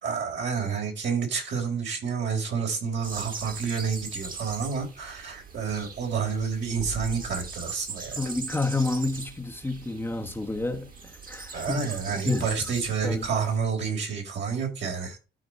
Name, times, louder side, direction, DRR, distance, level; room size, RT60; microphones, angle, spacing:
voice 1, 0.0-8.2 11.5-15.2, right 6 dB, 65° right, 4.0 m, -29 dB
sound 1, 3.0-13.6, right 4 dB, 45° right, 2.4 m, -40 dB
voice 2, 8.2-10.9 11.3-12.5 13.0-13.3, left 2 dB, 10° left, 1.1 m, -29 dB
12.5 x 4.9 x 3.1 m
cardioid pair, 90°, 20 cm